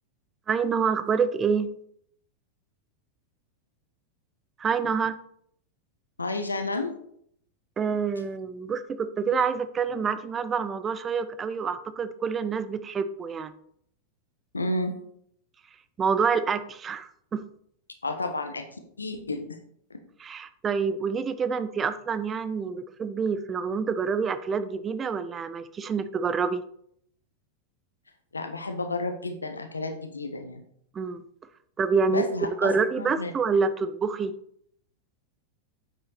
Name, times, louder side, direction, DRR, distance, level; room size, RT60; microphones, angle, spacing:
voice 1, 0.5-1.7 4.6-5.2 7.8-13.5 16.0-17.5 20.2-26.6 30.9-31.2 31.8-34.4, right 5 dB, 20° right, 12 dB, 0.7 m, -27 dB
voice 2, 6.2-6.9 14.5-15.0 18.0-18.7 19.0-19.6 19.9-20.0 28.3-30.6 32.1-33.3, left 2 dB, 80° left, 7 dB, 1.3 m, -31 dB
9.1 x 7.8 x 4.2 m, 0.68 s
figure-of-eight pair, 90°, 0 cm